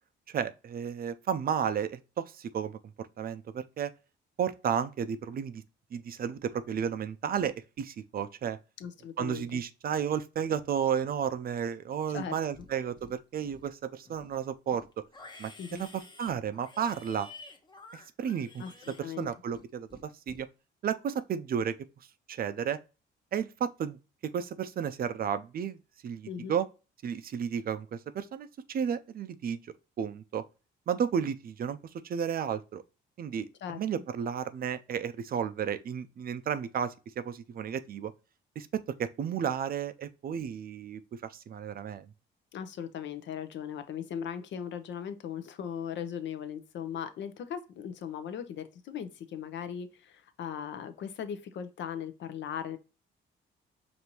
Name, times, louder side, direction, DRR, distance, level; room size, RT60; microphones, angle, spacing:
voice 1, 0.3-2.8 3.2-3.9 4.4-5.6 5.9-8.6 9.2-14.8 15.4-17.3 17.9-20.5 20.8-21.7 22.3-22.8 23.3-24.0 24.3-26.7 27.0-29.6 30.0-30.4 30.9-31.8 32.0-32.8 33.2-38.1 38.6-41.0 41.3-42.1, right 8 dB, 50° right, 0.4 m, -33 dB
voice 2, 8.8-9.6 12.1-12.3 15.6-15.8 18.6-19.3 26.3-26.5 33.6-33.8 42.5-52.8, left 8 dB, 65° left, 0.6 m, -38 dB
Livestock farm animals working animals, 12.1-12.7 13.0-13.7 14.0-19.6 19.9-20.4, left 3 dB, 20° left, 0.8 m, -51 dB
5.1 x 2.6 x 2.9 m
cardioid pair, 90°, 20 cm